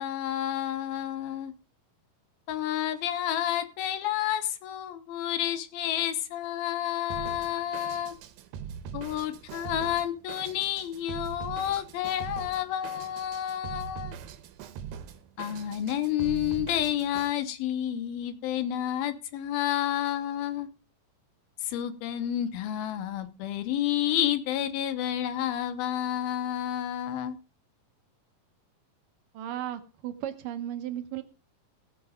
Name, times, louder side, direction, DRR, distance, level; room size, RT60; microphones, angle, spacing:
voice 1, 0.0-1.5 2.5-8.2 8.9-14.1 15.4-20.7 21.6-27.4, left 11 dB, 85° left, 10 dB, 2.9 m, -30 dB
Drum kit, 7.1-17.3, right 8 dB, 90° right, 2.8 m, -42 dB
voice 2, 29.3-31.2, right 11 dB, 70° right, 8 dB, 2.5 m, -35 dB
17.5 x 6.0 x 5.0 m, 0.33 s
omnidirectional pair, 4.2 m